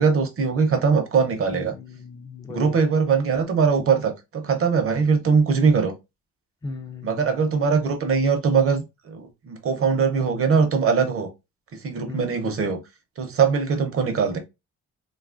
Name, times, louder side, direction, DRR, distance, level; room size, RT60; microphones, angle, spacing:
voice 1, 0.0-1.7 2.5-5.9 7.0-11.3 11.7-12.8 13.2-14.4, right 5 dB, 50° right, 0.7 m, -21 dB
voice 2, 1.5-2.8 6.6-7.4 12.1-12.5, left 3 dB, 15° left, 0.4 m, -37 dB
2.9 x 2.3 x 2.4 m
cardioid pair, 90°, 30 cm